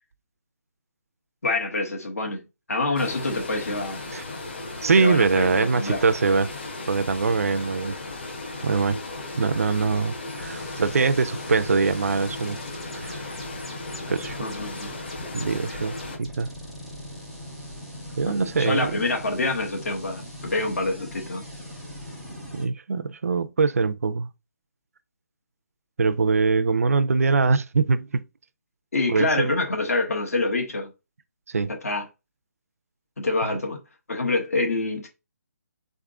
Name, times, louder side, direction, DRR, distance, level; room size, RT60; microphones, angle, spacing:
voice 1, 1.4-2.4 2.7-4.1 5.0-6.0 14.4-14.9 18.2-21.4 28.9-30.9 31.8-32.0 33.2-33.8 34.1-35.1, left 2 dB, 60° left, 1.5 m, -26 dB
sound 1, 2.9-16.2, left 2 dB, 35° left, 1.2 m, -36 dB
voice 2, 4.8-6.6 6.9-8.0 8.6-9.0 9.4-12.6 12.9-13.3 14.1-14.4 15.3-16.5 18.2-19.0 22.5-24.3 26.0-28.2 29.1-29.5 31.5-31.7 33.5-33.6, right 4 dB, 60° right, 0.5 m, -23 dB
sound 2, 10.3-22.7, left 1 dB, ahead, 0.3 m, -40 dB
3.9 x 3.6 x 3.6 m
hypercardioid pair, 175°, 9 cm